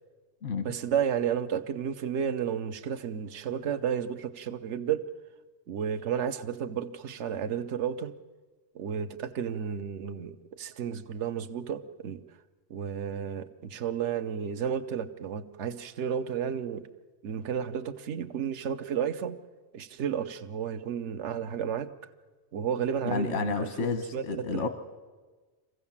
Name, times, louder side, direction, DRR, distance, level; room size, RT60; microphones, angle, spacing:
voice 1, 0.6-5.1 5.7-8.1 8.7-12.2 12.7-16.9 17.2-19.4 19.7-21.9 22.5-24.7, right 8 dB, 80° right, 10 dB, 1.1 m, -32 dB
voice 2, 23.0-24.7, left 4 dB, 85° left, 8 dB, 1.4 m, -30 dB
24.5 x 16.0 x 7.2 m, 1.3 s
omnidirectional pair, 1.2 m